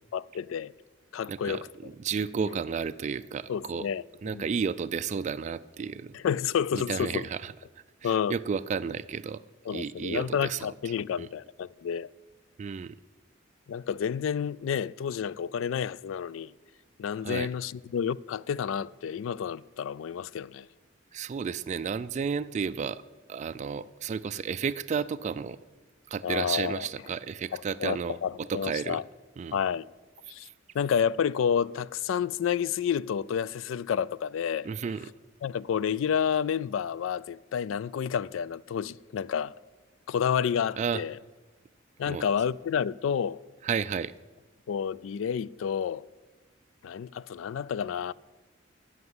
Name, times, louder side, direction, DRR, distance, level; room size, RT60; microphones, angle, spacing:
voice 1, 0.1-0.7 1.1-1.7 2.4-2.5 3.5-4.6 6.1-7.3 8.0-8.4 9.7-12.1 13.7-16.5 17.0-20.7 26.2-26.9 27.5-29.0 29.5-29.8 30.3-30.5 30.7-34.7 35.4-39.5 40.1-41.2 42.0-43.4 44.7-46.0 46.8-48.1, left 7 dB, 75° left, 0.3 m, -30 dB
voice 2, 1.3-3.9 4.2-6.1 6.7-7.5 8.0-9.4 9.7-10.7 11.2-11.3 12.6-12.9 17.2-17.5 21.1-23.0 23.3-25.6 26.1-28.2 28.5-29.0 29.4-29.5 34.6-35.1 40.8-41.0 42.1-42.2 43.6-44.1, right 6 dB, 35° right, 0.3 m, -32 dB
15.0 x 5.8 x 7.9 m
head